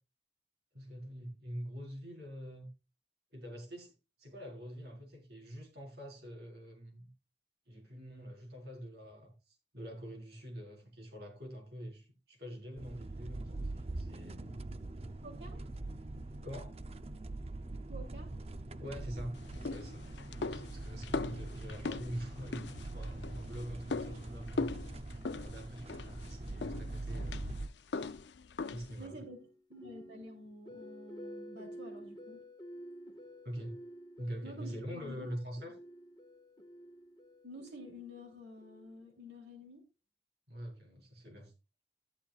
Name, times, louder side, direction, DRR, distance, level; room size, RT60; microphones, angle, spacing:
voice 1, 0.7-2.7 3.3-3.9 4.2-7.1 7.7-14.6 15.5-15.7 16.4-16.8 18.8-19.3 19.6-20.0 20.4-24.8 25.3-27.5 27.9-28.2 28.7-29.2 33.4-33.8 34.2-35.7 40.5-41.5, equal, 65° right, 4.6 m, -45 dB
sound 1, 12.8-27.7, right 2 dB, 35° right, 0.6 m, -43 dB
voice 2, 15.2-15.6 17.7-18.3 20.9-21.3 29.0-29.4 29.7-32.4 34.4-35.3 37.4-39.8, equal, 80° right, 3.1 m, -50 dB
sound 2, 19.3-29.1, left 3 dB, 80° left, 0.6 m, -41 dB
sound 3, 29.1-39.2, equal, 25° left, 1.5 m, -51 dB
13.0 x 11.5 x 2.4 m
head